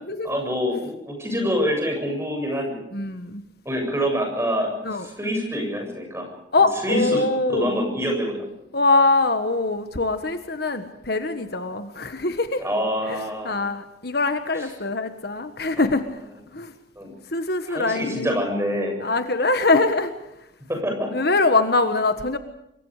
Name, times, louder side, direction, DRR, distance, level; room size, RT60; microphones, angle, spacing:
voice 1, 0.2-2.8 3.7-4.7 5.0-6.3 6.8-8.4 12.6-13.5 14.6-14.7 15.8-15.9 17.0-17.1 17.7-19.0 20.7-21.1, equal, 15° right, 2 dB, 7.3 m, -26 dB
voice 2, 2.9-3.4 4.8-5.1 6.5-7.8 8.7-12.6 13.1-13.2 13.4-16.0 16.5-16.7 17.3-18.4 19.0-20.1 21.1-22.4, left 3 dB, 55° left, 8 dB, 1.5 m, -23 dB
26.5 x 23.5 x 5.0 m, 0.82 s
head